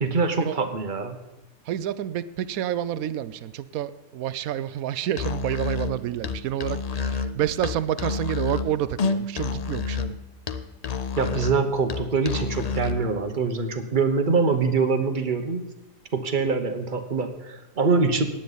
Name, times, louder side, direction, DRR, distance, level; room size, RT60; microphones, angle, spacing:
voice 1, 0.0-1.2 11.1-15.6 16.1-18.3, right 4 dB, 40° right, 7 dB, 1.1 m, -24 dB
voice 2, 1.6-10.2, right 11 dB, 85° right, 16 dB, 1.1 m, -29 dB
Musical instrument, 5.1-13.1, left 5 dB, 50° left, 0.5 m, -29 dB
17.0 x 10.0 x 4.0 m, 1.0 s
omnidirectional pair, 1.5 m